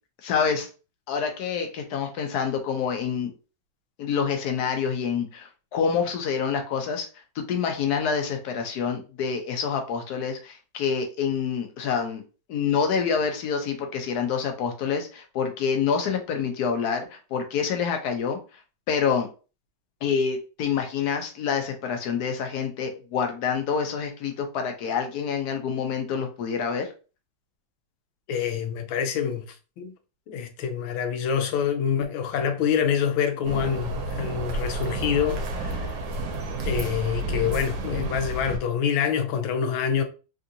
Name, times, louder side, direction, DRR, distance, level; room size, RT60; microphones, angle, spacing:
voice 1, 0.2-0.7 1.1-3.3 4.0-7.1 7.4-12.2 12.5-18.4 18.9-19.3 20.0-26.9, left 6 dB, 70° left, 1.0 m, -27 dB
voice 2, 28.3-29.5 29.8-29.9 30.3-36.0 36.6-40.0, left 7 dB, 85° left, 1.4 m, -26 dB
sound 1, 33.4-38.6, right 1 dB, 75° right, 1.3 m, -30 dB
3.5 x 2.5 x 2.7 m
omnidirectional pair, 2.1 m